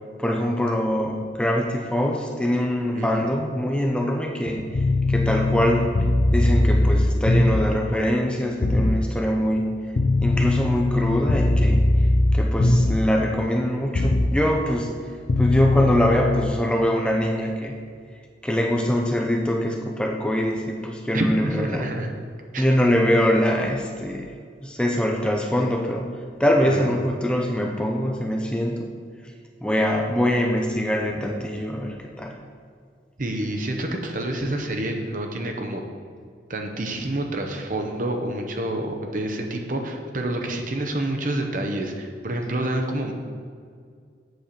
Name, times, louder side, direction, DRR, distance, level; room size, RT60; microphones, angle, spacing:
voice 1, 0.2-4.6 5.1-5.9 6.3-9.7 10.2-11.8 12.3-14.9 15.4-17.7 18.4-21.8 22.6-24.3 24.6-26.1 26.4-28.9 29.6-32.3, equal, 5° left, 1 dB, 0.6 m, -23 dB
voice 2, 2.9-3.3 4.5-4.6 21.1-22.1 22.5-22.6 26.6-26.9 33.2-35.8 36.5-43.1, right 1 dB, 45° right, 3 dB, 0.9 m, -28 dB
sound 1, 4.7-7.8 8.6-9.0 10.0-13.1 13.9-14.3 15.3-16.5, left 2 dB, 55° left, 0.5 m, -20 dB
7.9 x 4.4 x 6.8 m, 2.1 s
head